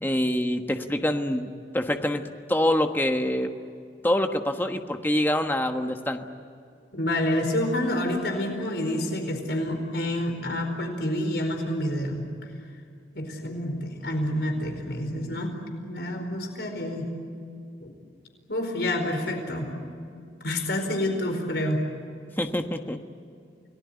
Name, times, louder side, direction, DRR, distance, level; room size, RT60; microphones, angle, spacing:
voice 1, 0.0-1.5 1.7-3.5 4.0-6.3 22.4-23.0, left 1 dB, 10° left, 5 dB, 1.3 m, -25 dB
voice 2, 6.9-12.2 13.1-15.5 15.8-17.1 17.8-17.9 18.5-19.7 20.4-21.8, left 1 dB, 70° left, 4 dB, 4.7 m, -28 dB
29.5 x 19.0 x 9.9 m, 2.4 s
head